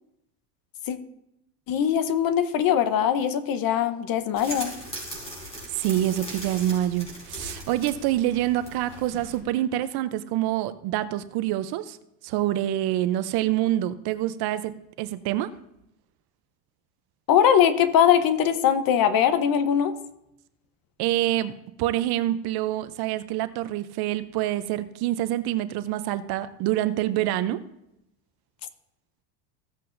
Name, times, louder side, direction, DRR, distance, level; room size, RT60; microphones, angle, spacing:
voice 1, 1.7-4.7 17.3-19.9, left 9 dB, 45° left, 12 dB, 0.9 m, -21 dB
sound 1, 4.3-9.4, right 1 dB, 10° left, 4.3 m, -39 dB
voice 2, 5.7-12.0 12.2-15.5 21.0-27.6, right 13 dB, 50° right, 13 dB, 0.7 m, -26 dB
15.5 x 7.5 x 2.6 m, 0.83 s
supercardioid pair, 110°, 50 cm